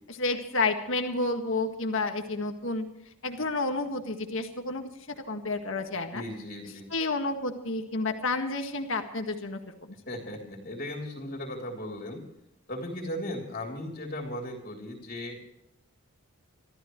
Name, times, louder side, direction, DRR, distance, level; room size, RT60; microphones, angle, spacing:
voice 1, 0.2-2.8 3.2-6.2 6.9-9.7, left 3 dB, 60° left, 5 dB, 1.8 m, -30 dB
voice 2, 5.9-6.9 10.1-12.2 12.7-15.4, left 1 dB, 40° left, 1 dB, 3.3 m, -37 dB
25.5 x 14.0 x 3.2 m, 0.83 s
head